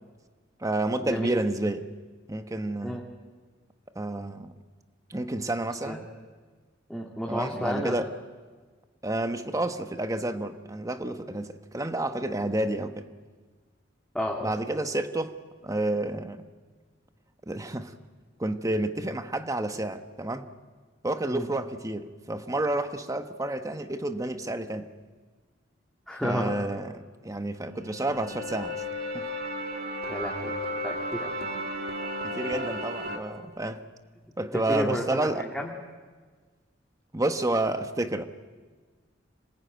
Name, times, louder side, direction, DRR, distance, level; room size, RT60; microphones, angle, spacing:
voice 1, 0.6-1.9 2.3-3.0 3.9-4.5 5.1-6.0 7.3-8.1 9.0-13.1 14.4-15.3 15.6-16.4 17.5-17.9 18.4-20.5 21.0-24.9 26.2-28.8 29.1-29.3 32.2-33.8 34.4-35.5 37.1-38.2, right 1 dB, 20° right, 1.1 m, -30 dB
voice 2, 6.9-7.9 14.1-14.5 21.3-21.5 26.1-26.5 30.1-30.5 30.8-31.3 34.5-35.7, equal, ahead, 2.1 m, -31 dB
sound 1, 27.6-33.2, equal, 55° right, 2.5 m, -34 dB
26.0 x 19.5 x 9.3 m
head